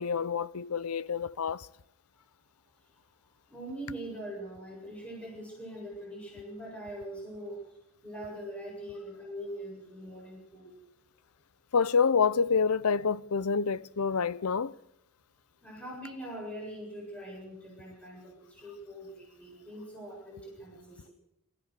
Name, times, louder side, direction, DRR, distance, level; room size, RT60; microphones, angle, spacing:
voice 1, 0.0-1.7 11.7-14.7, left 5 dB, 80° left, 0.7 m, -27 dB
voice 2, 3.5-7.6 8.0-10.7 15.6-21.1, right 1 dB, 5° left, 7.6 m, -42 dB
26.5 x 15.0 x 6.7 m
head